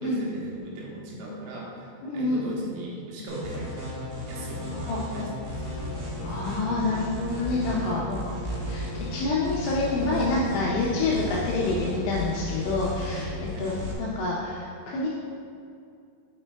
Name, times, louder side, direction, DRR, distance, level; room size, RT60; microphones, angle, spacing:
voice 1, 0.0-5.7 13.5-13.7, right 1 dB, 90° right, -4 dB, 3.5 m, -38 dB
voice 2, 2.0-2.4 4.7-5.3 6.2-8.2 8.7-8.8 9.1-13.3 13.6-15.1, left 3 dB, 85° left, -5 dB, 2.6 m, -27 dB
sound 1, 3.3-13.9, equal, 65° right, 3.3 m, -35 dB
sound 2, 5.5-13.5, left 3 dB, 65° left, 2.2 m, -38 dB
7.1 x 6.4 x 2.2 m, 2.4 s
omnidirectional pair, 6.0 m